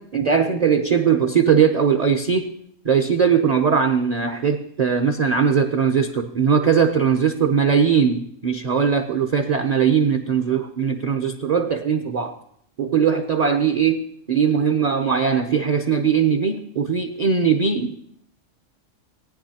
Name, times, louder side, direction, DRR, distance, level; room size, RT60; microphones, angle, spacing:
voice 1, 0.0-2.5 2.8-12.3 12.8-14.0 14.3-18.0, right 6 dB, 45° right, 4 dB, 0.6 m, -20 dB
17.5 x 9.4 x 2.8 m, 0.68 s
omnidirectional pair, 1.3 m